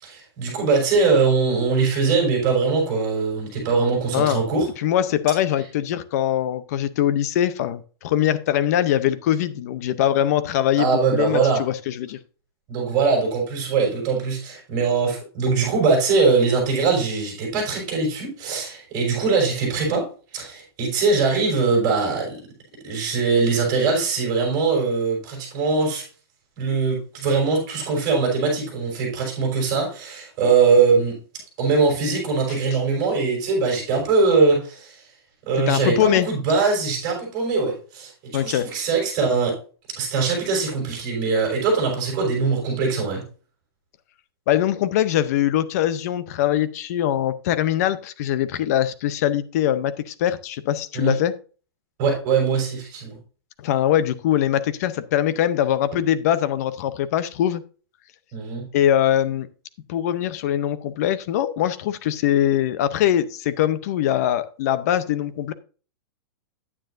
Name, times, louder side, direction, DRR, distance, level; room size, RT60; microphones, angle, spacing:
voice 1, 0.0-4.7 10.8-11.6 12.7-20.0 20.3-22.4 22.8-26.0 26.6-31.1 31.6-35.0 35.4-39.5 40.0-43.2 50.9-51.1 52.0-53.2 58.3-58.6, right 4 dB, 30° right, -2 dB, 5.3 m, -21 dB
voice 2, 4.8-12.2 35.7-36.3 38.3-38.7 44.5-51.3 53.6-57.6 58.7-59.5 59.9-65.5, left 11 dB, 40° left, 14 dB, 0.6 m, -22 dB
9.8 x 9.0 x 2.6 m, 0.38 s
supercardioid pair, 175°, 13 cm